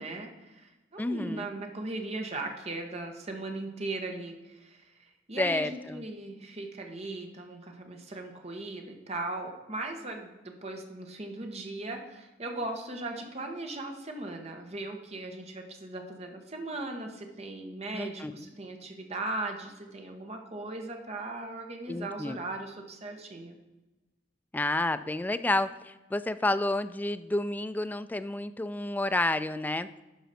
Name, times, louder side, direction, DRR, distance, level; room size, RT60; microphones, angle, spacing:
voice 1, 0.0-23.5, right 2 dB, 35° right, 3 dB, 1.3 m, -38 dB
voice 2, 1.0-1.5 5.4-6.0 17.9-18.3 21.9-22.4 24.5-29.9, left 2 dB, 10° left, 11 dB, 0.3 m, -30 dB
11.5 x 5.2 x 4.2 m, 1.1 s
head